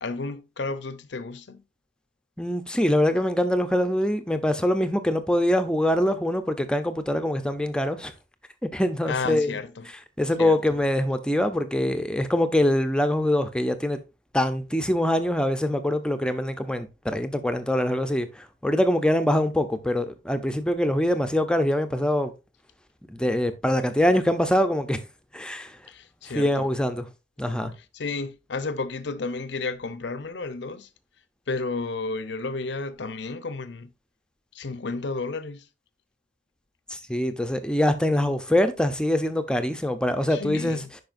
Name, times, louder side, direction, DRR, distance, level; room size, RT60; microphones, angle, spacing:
voice 1, 0.0-1.6 9.1-9.9 10.4-10.6 25.9-26.7 27.9-30.9 31.5-33.9 34.5-35.7 40.3-40.9, left 3 dB, 75° left, 0.7 m, -32 dB
voice 2, 2.4-8.1 8.6-9.6 10.2-14.0 14.3-22.3 23.1-25.0 25.3-25.8 26.3-27.1 27.4-27.7 36.9-40.8, left 1 dB, 5° left, 0.6 m, -24 dB
10.5 x 4.8 x 2.6 m
head